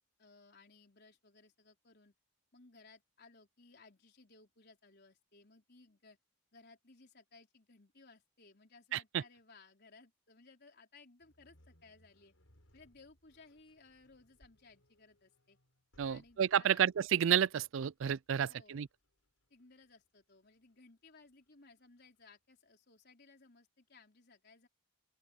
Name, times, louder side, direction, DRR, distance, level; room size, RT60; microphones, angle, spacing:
voice 1, 0.2-2.1 2.5-6.2 6.5-12.3 12.7-15.6 16.0-16.8 18.3-18.8 19.5-24.7, left 3 dB, 50° left, 4.3 m, -61 dB
voice 2, 8.9-9.2 16.0-18.9, right 9 dB, 65° right, 0.4 m, -31 dB
sound 1, 11.2-22.3, equal, 70° left, 7.1 m, -71 dB
open air
head